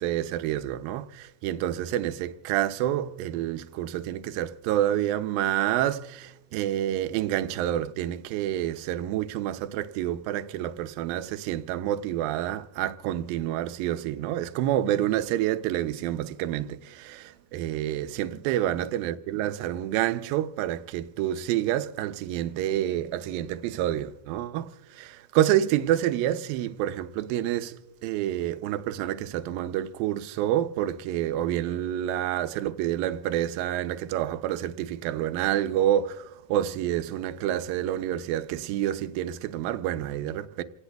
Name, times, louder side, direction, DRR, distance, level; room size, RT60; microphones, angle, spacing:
voice 1, 0.0-40.6, right 12 dB, 80° right, 2.1 m, -28 dB
28.0 x 18.0 x 2.3 m
omnidirectional pair, 4.8 m